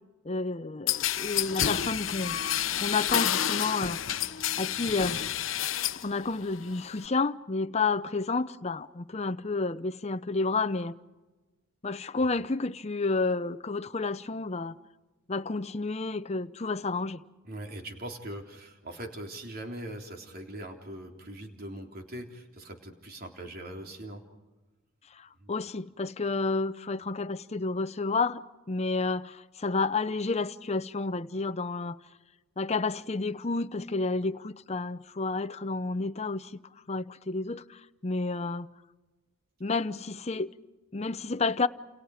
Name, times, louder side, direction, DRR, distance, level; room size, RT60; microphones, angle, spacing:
voice 1, 0.2-2.4 2.8-4.0 4.6-5.2 6.0-10.9 11.8-14.8 15.3-17.2 25.1-32.0 32.6-36.6 36.9-38.7 39.6-40.5 40.9-41.7, left 3 dB, 30° left, 0.7 m, -30 dB
sound 1, 0.9-6.1 6.4-7.1, left 10 dB, 70° left, 0.9 m, -29 dB
voice 2, 17.4-24.2 25.4-25.5, right 1 dB, 50° right, 3.7 m, -41 dB
29.5 x 28.5 x 5.0 m
head